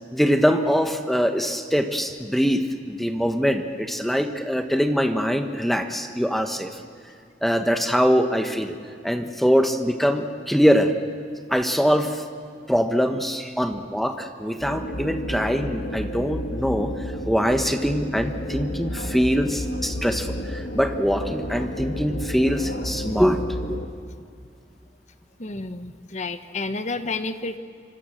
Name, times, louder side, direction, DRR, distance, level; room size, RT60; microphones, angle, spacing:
voice 1, 0.1-6.7 7.4-8.7 9.0-10.9 11.5-12.2 12.7-16.9 17.3-23.4 23.7-23.8, equal, ahead, 6 dB, 1.2 m, -23 dB
sound 1, 14.6-23.9, left 1 dB, 65° left, 2.1 m, -32 dB
voice 2, 25.4-27.6, left 3 dB, 40° left, 9 dB, 1.1 m, -30 dB
25.5 x 25.0 x 6.6 m, 2.2 s
head